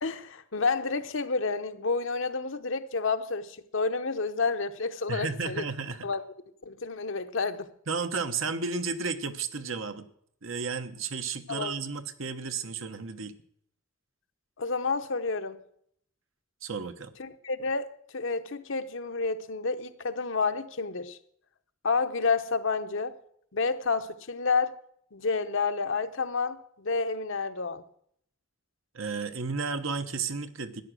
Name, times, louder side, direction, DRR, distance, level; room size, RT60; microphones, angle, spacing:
voice 1, 0.0-5.6 6.0-6.2 6.7-7.7 11.5-11.7 14.6-15.6 17.2-17.9 18.1-21.2 21.8-23.1 23.5-24.8 25.1-27.8, left 4 dB, 65° left, 0.9 m, -29 dB
voice 2, 5.1-6.1 7.9-10.1 10.4-13.3 16.6-17.1 28.9-30.8, right 4 dB, 70° right, 1.1 m, -33 dB
13.5 x 10.0 x 6.2 m
head